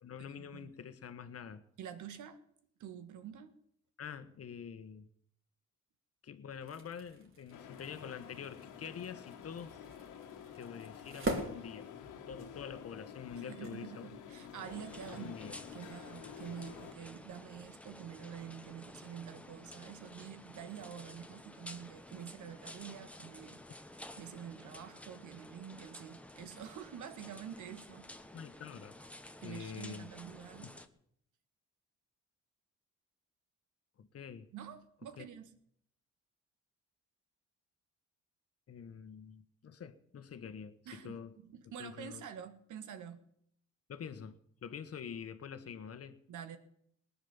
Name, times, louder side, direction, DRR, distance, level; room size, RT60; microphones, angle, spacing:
voice 1, 0.0-1.6 4.0-5.1 6.2-9.8 10.6-11.9 12.3-14.1 15.1-15.6 28.3-28.9 29.4-30.1 34.0-34.5 35.2-35.3 38.7-41.3 41.8-42.2 43.9-46.2, left 7 dB, 50° left, 1.4 m, -46 dB
voice 2, 1.8-2.4 2.8-3.5 13.4-23.6 24.2-28.1 29.4-30.8 34.5-35.5 40.9-43.2 46.3-46.6, right 8 dB, 80° right, 1.7 m, -47 dB
sound 1, 6.5-12.5, right 2 dB, 40° right, 3.2 m, -43 dB
sound 2, 7.5-16.9, left 8 dB, 90° left, 1.8 m, -50 dB
sound 3, 14.6-30.9, left 1 dB, 5° left, 1.2 m, -52 dB
19.0 x 9.9 x 7.2 m
cardioid pair, 90°, 30 cm